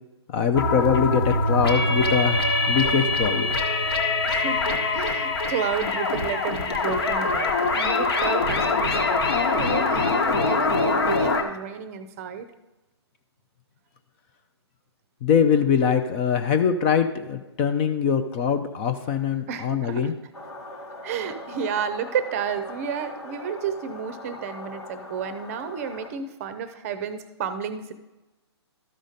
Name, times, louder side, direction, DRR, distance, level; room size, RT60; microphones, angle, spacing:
voice 1, 0.3-2.4 2.7-3.5 15.2-20.2, left 7 dB, 25° left, 8 dB, 0.5 m, -22 dB
sound 1, 0.5-11.4, left 3 dB, 60° left, 1.3 m, -23 dB
voice 2, 4.3-12.5 19.5-20.1 21.0-27.9, right 7 dB, 30° right, 10 dB, 0.7 m, -31 dB
sound 2, 20.3-26.1, left 1 dB, 85° left, 1.7 m, -40 dB
13.0 x 5.0 x 4.0 m, 1.0 s
figure-of-eight pair, 135°, 14 cm